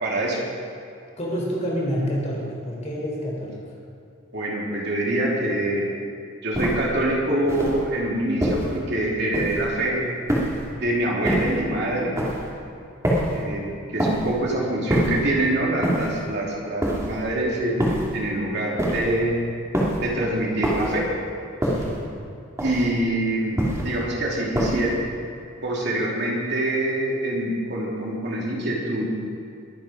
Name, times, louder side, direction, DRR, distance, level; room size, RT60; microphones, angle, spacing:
voice 1, 0.0-0.4 4.3-5.9 6.4-10.0 10.7-12.1 13.3-19.4 20.0-21.1 22.6-24.9 25.6-29.1, right 1 dB, 55° right, -3 dB, 3.1 m, -25 dB
voice 2, 1.2-3.6 21.6-22.0, equal, 35° left, -3 dB, 3.8 m, -28 dB
sound 1, 6.5-6.9 7.5-7.9 8.4-8.8 9.3-9.7 10.3-10.7 11.2-11.6 12.2-12.5 13.0-13.4 14.0-14.4 14.9-15.3 15.8-16.2 16.8-17.2 17.8-18.2 18.8-19.2 19.7-20.1 20.6-21.0 21.6-22.0 22.6-23.0 23.6-24.0 24.6-25.0, right 1 dB, 15° right, 2.6 m, -25 dB
22.0 x 8.9 x 5.2 m, 2.5 s
head